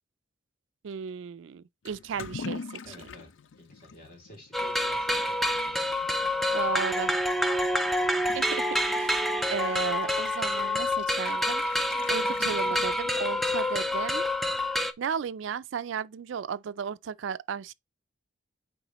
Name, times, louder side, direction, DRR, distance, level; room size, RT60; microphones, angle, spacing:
voice 1, 0.8-2.8 6.5-7.1 8.3-9.2 9.5-14.2 15.0-17.7, right 7 dB, 75° right, 0.4 m, -35 dB
Toilet flush / Liquid, 1.8-13.5, left 5 dB, 75° left, 0.4 m, -45 dB
voice 2, 2.8-3.3 3.5-5.8, left 1 dB, 50° left, 2.9 m, -50 dB
sound 1, 4.5-14.9, left 1 dB, ahead, 0.5 m, -27 dB
9.0 x 3.7 x 3.0 m
head